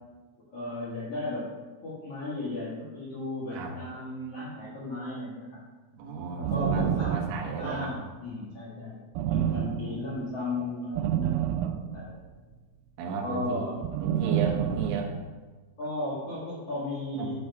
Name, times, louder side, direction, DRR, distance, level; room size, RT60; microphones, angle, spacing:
voice 1, 0.5-1.5 1.8-5.6 6.4-7.2 7.5-9.0 9.3-12.1 13.0-13.8 15.8-17.3, left 2 dB, 85° left, -8 dB, 1.3 m, -35 dB
voice 2, 5.9-7.9 9.5-10.1 10.6-10.7 13.0-13.7 14.0-15.1 17.2-17.4, right 4 dB, 75° right, -1 dB, 3.4 m, -34 dB
sound 1, 6.4-7.9 9.2-10.2 11.0-12.5 13.8-15.3, right 10 dB, 90° right, 3.2 m, -29 dB
8.9 x 6.9 x 4.8 m, 1.3 s
omnidirectional pair, 5.8 m